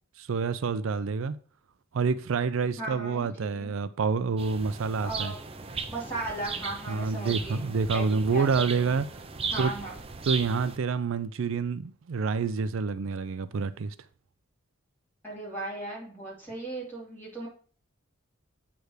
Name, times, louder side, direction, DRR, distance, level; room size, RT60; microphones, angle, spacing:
voice 1, 0.2-1.4 1.9-5.3 6.9-9.1 9.6-9.7 10.3-13.9, right 5 dB, 75° right, 0.4 m, -28 dB
voice 2, 2.8-3.7 5.0-5.4 5.9-7.7 7.9-8.9 9.5-10.0 15.2-17.5, right 2 dB, 10° left, 3.1 m, -37 dB
sound 1, 4.4-10.8, right 5 dB, 30° right, 0.6 m, -37 dB
8.1 x 3.3 x 6.4 m
head